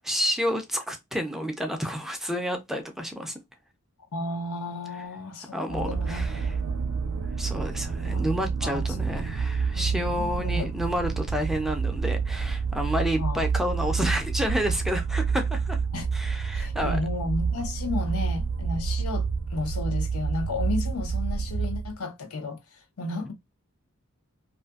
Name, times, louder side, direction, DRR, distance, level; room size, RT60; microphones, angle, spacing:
voice 1, 0.0-3.3 5.5-6.6 7.4-15.8 16.1-17.0, equal, ahead, 0.3 m, -30 dB
voice 2, 4.1-6.5 8.0-8.3 8.6-9.2 9.8-10.7 13.2-13.5 15.9-16.1 16.5-22.6 23.0-23.3, left 3 dB, 80° left, 0.7 m, -33 dB
sound 1, 5.7-21.9, right 5 dB, 85° right, 0.4 m, -28 dB
2.5 x 2.5 x 2.2 m
head